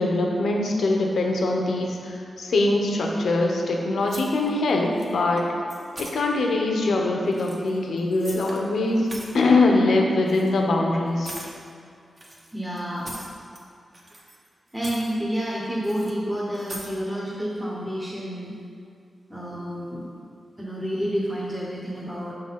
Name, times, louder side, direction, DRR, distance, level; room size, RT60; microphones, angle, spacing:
voice 1, 0.0-5.4 6.0-9.1 9.3-11.3, left 2 dB, 80° left, 1 dB, 0.8 m, -22 dB
sound 1, 4.1-4.7 5.0-5.4 5.7-6.1 7.2-8.6 8.9-9.4 10.3-10.5 11.2-11.5 12.2-13.6 13.9-14.5 14.7-15.1 15.8-16.1 16.5-16.9, right 1 dB, 35° right, 1.1 m, -40 dB
voice 2, 12.5-13.1 14.7-18.6 19.3-20.1 20.6-22.3, equal, 5° right, -6 dB, 1.0 m, -29 dB
6.1 x 3.9 x 5.7 m, 2.4 s
wide cardioid pair, 90°, 0 cm